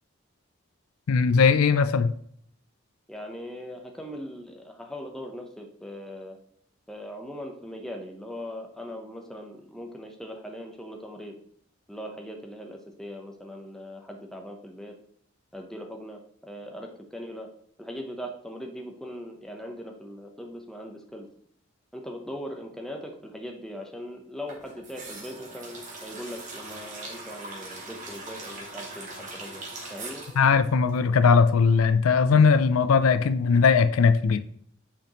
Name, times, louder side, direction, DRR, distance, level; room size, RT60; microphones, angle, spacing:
voice 1, 1.1-2.1 30.4-34.4, left 5 dB, 90° left, 0.4 m, -19 dB
voice 2, 3.1-6.4 6.9-11.3 11.9-14.9 15.5-17.5 17.8-21.3 21.9-29.6 29.9-30.2, equal, ahead, 0.8 m, -40 dB
sound 1, 24.5-31.5 31.7-31.8, right 2 dB, 35° right, 1.6 m, -41 dB
8.6 x 5.1 x 3.0 m
head